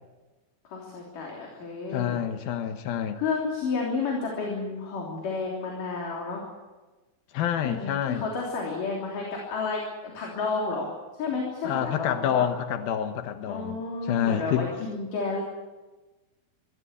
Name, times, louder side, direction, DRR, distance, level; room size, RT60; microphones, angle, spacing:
voice 1, 0.6-2.2 3.2-6.5 7.6-10.9 11.2-12.5 13.5-15.4, left 4 dB, 65° left, -1 dB, 4.8 m, -31 dB
voice 2, 1.9-3.2 7.3-8.3 11.6-14.7, left 9 dB, 85° left, 8 dB, 3.0 m, -28 dB
23.0 x 15.5 x 9.7 m, 1.2 s
omnidirectional pair, 4.2 m